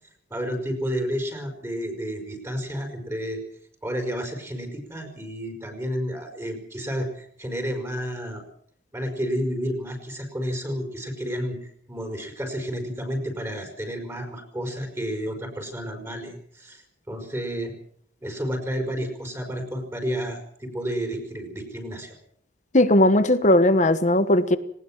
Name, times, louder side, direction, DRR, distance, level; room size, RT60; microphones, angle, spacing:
voice 1, 0.3-3.4 3.8-8.4 8.9-17.7 18.2-22.1, equal, 15° right, 4 dB, 5.1 m, -31 dB
voice 2, 22.7-24.6, left 1 dB, 40° left, 12 dB, 1.3 m, -18 dB
20.0 x 19.0 x 7.5 m, 0.63 s
head